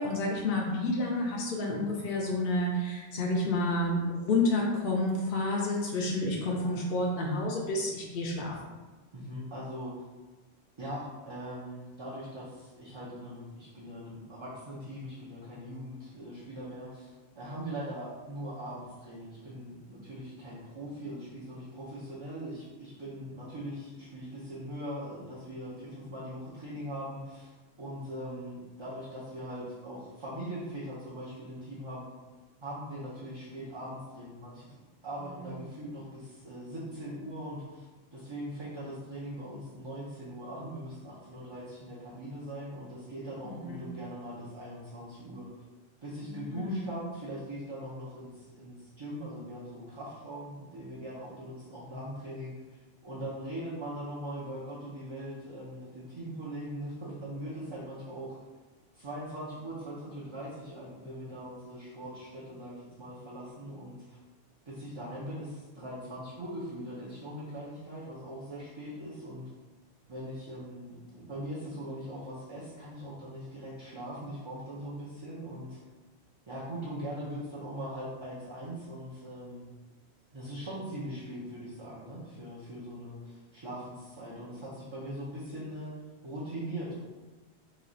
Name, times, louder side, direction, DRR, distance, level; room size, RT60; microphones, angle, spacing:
voice 1, 0.0-8.6 43.4-43.8 46.2-46.9, left 2 dB, 60° left, -2 dB, 0.7 m, -30 dB
voice 2, 9.1-10.0 10.8-27.5 27.8-32.1 32.6-34.7 35.0-37.9 38.1-45.5 46.0-58.4 58.9-64.2 64.7-69.5 70.1-75.8 76.5-79.6 80.3-85.9 86.2-87.0, equal, 35° right, -8 dB, 0.6 m, -41 dB
3.1 x 2.4 x 3.8 m, 1.2 s
omnidirectional pair, 1.1 m